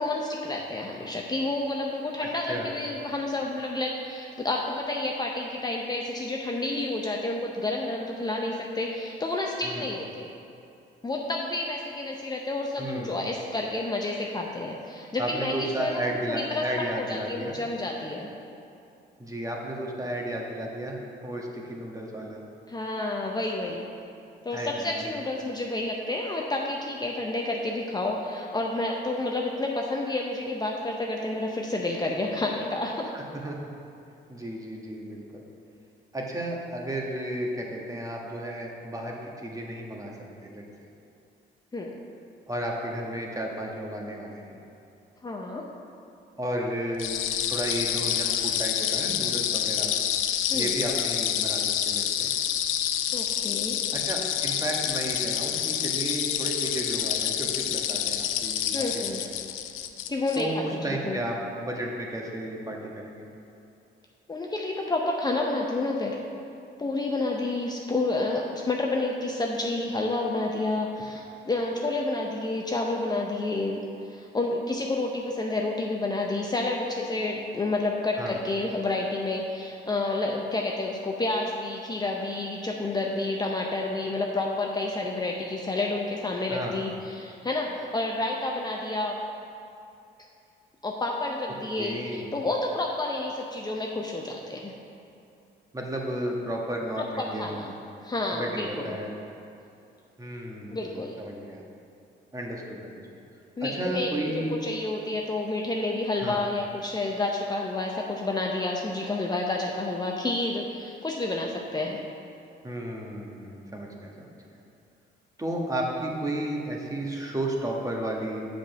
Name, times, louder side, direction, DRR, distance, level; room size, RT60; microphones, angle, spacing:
voice 1, 0.0-10.3 11.0-16.6 17.0-18.3 22.7-23.8 24.4-33.1 41.7-42.0 45.2-45.7 50.5-50.7 53.1-53.8 58.7-59.2 60.1-60.5 60.9-61.2 64.3-66.2 66.8-73.8 74.1-89.2 90.8-92.0 92.3-94.7 97.0-97.7 98.0-99.0 100.7-101.2 103.6-112.0, left 2 dB, 20° left, -1 dB, 0.7 m, -29 dB
voice 2, 12.8-13.1 15.2-17.5 19.2-21.0 21.2-22.4 24.5-25.2 33.1-33.6 34.3-35.4 36.1-40.1 40.4-40.6 42.5-44.6 46.4-47.1 47.5-49.9 50.5-52.3 53.9-59.1 60.3-63.3 78.2-78.4 86.5-86.8 91.8-92.3 95.7-97.8 98.3-99.1 100.2-101.6 102.3-103.0 103.6-104.5 106.2-106.4 112.6-114.3 115.4-118.5, right 1 dB, 15° right, -1 dB, 1.4 m, -33 dB
sound 1, 47.0-60.4, left 10 dB, 90° left, 0.5 m, -28 dB
7.1 x 5.2 x 6.7 m, 2.7 s
cardioid pair, 90°, 20 cm